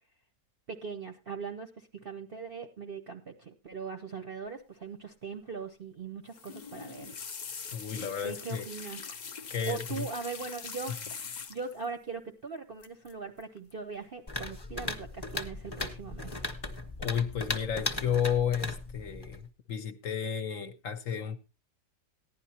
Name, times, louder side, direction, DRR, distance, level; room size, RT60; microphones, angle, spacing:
voice 1, 0.7-7.1 7.9-9.0 9.7-11.0 11.5-16.5, right 5 dB, 50° right, 0.7 m, -40 dB
sound 1, 6.3-11.8 12.8-13.1 13.4-13.7 14.9-15.5 15.8-16.4 16.8-17.2 17.6-17.7, left 6 dB, 70° left, 0.4 m, -43 dB
voice 2, 7.7-8.7 9.5-10.1 17.0-21.4, left 8 dB, 55° left, 1.1 m, -32 dB
sound 2, 14.3-19.5, left 2 dB, 20° left, 0.7 m, -37 dB
15.5 x 10.5 x 2.8 m
omnidirectional pair, 1.8 m